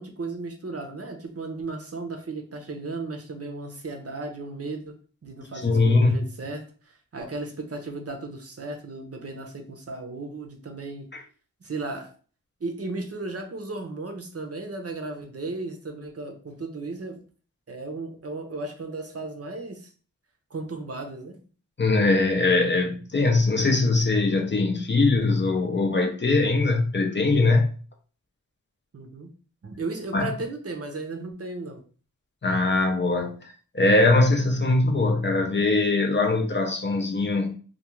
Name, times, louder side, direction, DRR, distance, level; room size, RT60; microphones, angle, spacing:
voice 1, 0.0-5.0 5.2-11.1 11.6-12.1 12.6-17.2 17.7-19.9 20.5-21.4 28.9-29.3 29.6-31.8, right 3 dB, 45° right, 0.6 m, -35 dB
voice 2, 5.6-6.2 11.1-11.2 21.8-27.7 30.1-30.3 32.4-33.4 33.7-37.6, left 3 dB, 30° left, 0.5 m, -21 dB
2.3 x 2.3 x 3.0 m
cardioid pair, 45°, 35 cm